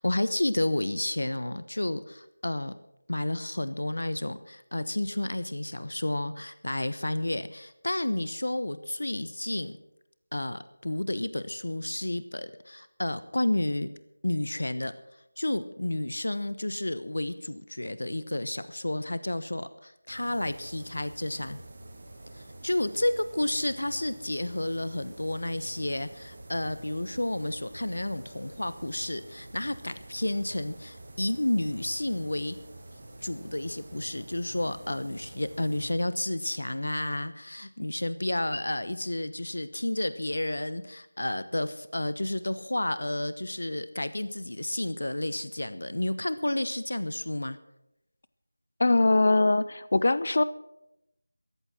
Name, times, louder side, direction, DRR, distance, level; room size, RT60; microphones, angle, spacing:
voice 1, 0.0-2.7 3.1-9.8 10.3-13.9 14.2-14.9 15.4-21.6 22.3-32.6 33.2-47.6, left 1 dB, 75° left, 13 dB, 0.9 m, -31 dB
sound 1, 20.1-35.9, right 1 dB, 25° right, 1.8 m, -48 dB
voice 2, 48.8-50.4, left 2 dB, 40° left, 16 dB, 0.5 m, -22 dB
14.0 x 11.0 x 6.0 m, 0.84 s
figure-of-eight pair, 180°, 0 cm